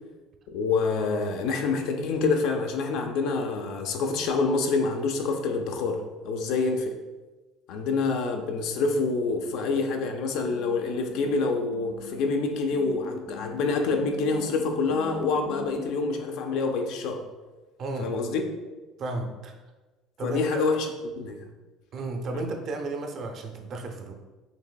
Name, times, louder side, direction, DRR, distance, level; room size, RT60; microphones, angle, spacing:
voice 1, 0.5-7.0 7.7-17.2 18.0-18.4 20.2-20.9 21.2-21.4 22.3-22.4, left 4 dB, 70° left, 4 dB, 0.5 m, -27 dB
sound 1, 10.5-15.9, left 4 dB, 10° left, 0.4 m, -43 dB
voice 2, 17.8-18.1 19.0-19.5 20.2-20.6 21.9-24.1, right 2 dB, 45° right, 4 dB, 0.6 m, -33 dB
5.3 x 3.0 x 2.3 m, 1.2 s
cardioid pair, 115°, 0 cm